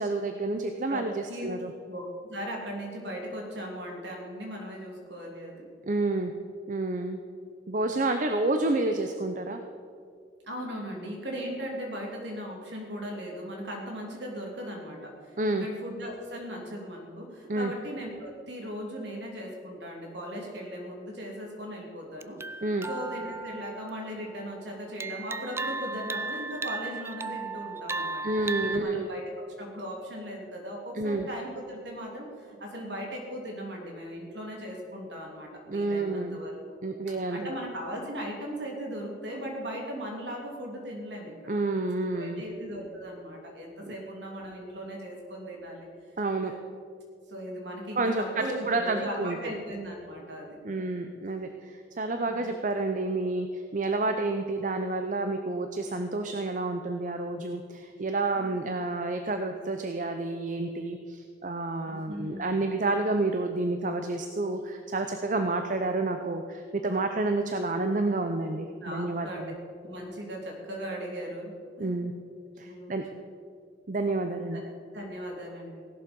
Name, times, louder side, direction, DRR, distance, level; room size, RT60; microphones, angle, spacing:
voice 1, 0.0-1.7 5.8-6.3 6.7-7.2 7.7-9.6 15.4-15.7 17.5-17.7 22.6-22.9 28.2-29.1 30.9-31.3 35.7-36.4 36.8-37.5 41.5-42.4 43.9-44.0 46.2-46.5 48.0-49.4 50.6-69.5 71.8-72.1 72.6-73.0 73.9-74.6, right 2 dB, 45° right, 6 dB, 0.7 m, -29 dB
voice 2, 0.9-1.5 1.9-5.7 10.5-15.3 15.6-22.4 22.9-28.2 28.6-36.6 37.1-41.5 42.1-45.9 46.4-46.6 47.3-50.8 52.3-52.5 58.3-58.5 61.8-62.7 68.8-69.5 69.8-71.5 71.8-71.9 72.7-72.9 74.5-74.6 74.9-75.8, equal, 70° right, 0 dB, 3.1 m, -38 dB
sound 1, 22.2-24.4 25.0-28.8, right 3 dB, 15° right, 0.3 m, -35 dB
16.5 x 11.5 x 5.3 m, 2.2 s
head